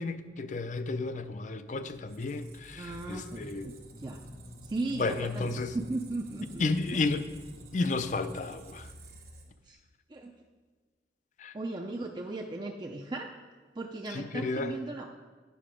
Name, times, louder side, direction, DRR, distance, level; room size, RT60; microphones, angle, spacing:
voice 1, 0.0-3.7 5.0-5.8 6.6-7.2 7.7-8.9 11.4-11.5 14.1-14.7, left 3 dB, 45° left, 11 dB, 0.4 m, -32 dB
Squeak, 1.9-9.7, right 1 dB, 55° right, 1.2 m, -49 dB
voice 2, 2.8-4.2 4.6-6.7 6.9-7.0 9.7-9.8 10.1-10.3 11.5-13.3 13.8-15.1, right 2 dB, 25° right, 1 dB, 0.4 m, -37 dB
9.3 x 5.7 x 5.0 m, 1.4 s
head